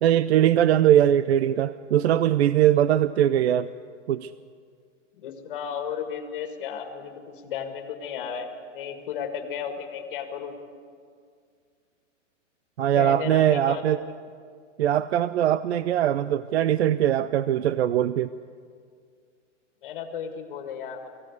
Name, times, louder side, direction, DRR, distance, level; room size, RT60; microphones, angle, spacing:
voice 1, 0.0-3.7 4.1-4.3 12.8-14.0 14.8-18.3, right 11 dB, 60° right, 15 dB, 0.5 m, -21 dB
voice 2, 5.2-7.1 7.4-8.5 8.7-10.5 12.8-14.0 19.8-21.1, left 7 dB, 45° left, 5 dB, 1.8 m, -34 dB
24.0 x 16.0 x 8.2 m, 2.1 s
hypercardioid pair, 170°, 37 cm